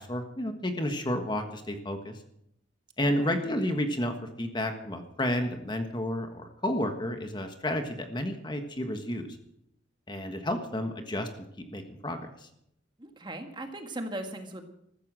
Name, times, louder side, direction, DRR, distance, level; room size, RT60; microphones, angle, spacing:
voice 1, 0.0-2.2 3.0-9.3 10.1-11.3 11.6-12.2, left 1 dB, 25° left, 6 dB, 1.4 m, -31 dB
voice 2, 3.0-3.4 13.0-14.6, right 1 dB, 25° right, 5 dB, 1.8 m, -38 dB
14.5 x 13.5 x 6.3 m, 0.75 s
head